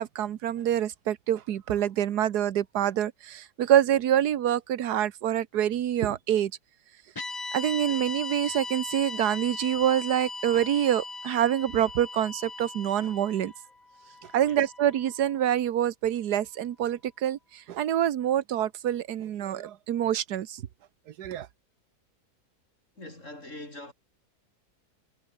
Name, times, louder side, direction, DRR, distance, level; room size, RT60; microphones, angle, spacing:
voice 1, 0.0-6.5 7.5-13.5 14.3-20.6 21.2-21.5, right 11 dB, 85° right, 1.5 m, -26 dB
sound 1, 7.2-15.5, left 3 dB, 20° left, 0.7 m, -39 dB
voice 2, 23.0-23.9, left 1 dB, 50° left, 7.6 m, -43 dB
omnidirectional pair, 1.7 m